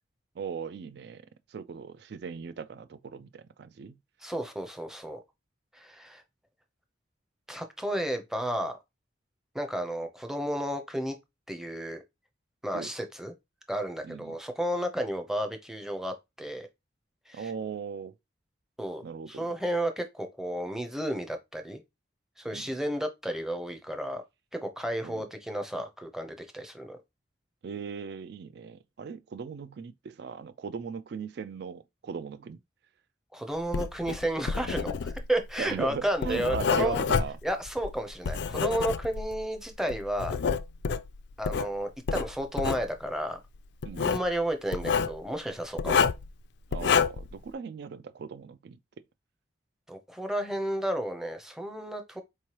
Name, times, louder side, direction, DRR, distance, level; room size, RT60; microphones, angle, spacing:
voice 1, 0.3-4.0 12.7-12.9 14.0-14.4 17.3-18.1 19.0-19.5 22.5-22.7 25.0-25.3 27.6-32.6 35.6-37.4 43.8-44.2 46.7-48.8, right 6 dB, 55° right, 0.3 m, -38 dB
voice 2, 4.2-5.2 5.7-6.2 7.5-8.8 9.5-11.2 11.5-12.0 12.6-13.3 13.7-16.7 17.3-17.5 18.8-21.8 22.4-24.2 24.5-27.0 33.3-37.0 37.4-40.4 41.4-43.4 44.0-46.0 49.9-52.2, right 1 dB, ahead, 0.6 m, -32 dB
Writing, 33.6-39.4 39.9-41.7 42.1-42.9 43.8-44.3 44.7-45.1 45.8-46.3 46.7-47.3, left 6 dB, 60° left, 0.3 m, -28 dB
4.4 x 3.2 x 2.9 m
head